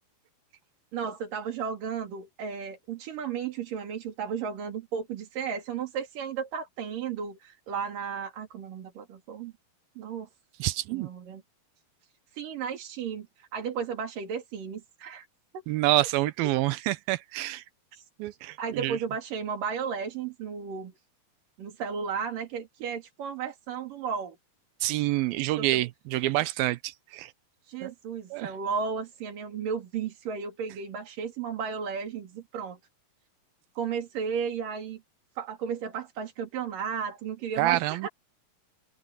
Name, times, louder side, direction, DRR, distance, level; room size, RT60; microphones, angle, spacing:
voice 1, 0.9-9.5 10.0-10.3 10.9-11.4 12.3-15.3 17.9-18.1 18.6-20.9 21.6-24.4 25.6-25.8 27.6-32.8 33.8-35.0 35.4-38.1, right 6 dB, 60° right, 4.2 m, -34 dB
voice 2, 10.6-11.1 15.7-17.6 18.2-19.0 24.8-27.3 27.8-27.9 28.3-28.5 37.6-38.1, right 17 dB, 85° right, 2.4 m, -27 dB
open air
omnidirectional pair, 4.4 m